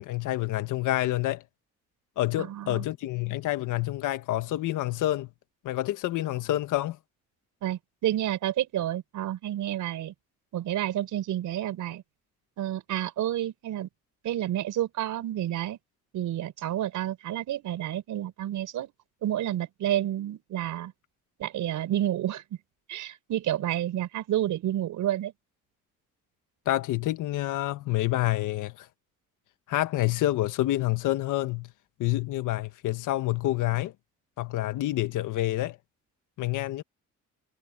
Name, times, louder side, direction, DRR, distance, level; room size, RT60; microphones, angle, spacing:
voice 1, 0.0-1.4 2.2-5.3 5.6-7.0 26.6-28.9 29.7-31.7 32.0-33.9 34.4-35.8 36.4-36.8, left 15 dB, 90° left, 1.6 m, -28 dB
voice 2, 2.4-2.8 7.6-10.1 10.5-12.0 12.6-13.9 14.2-15.8 16.1-18.9 19.2-20.9 21.4-22.4 22.9-25.3, right 12 dB, 80° right, 4.9 m, -30 dB
cardioid pair, 90°, 30 cm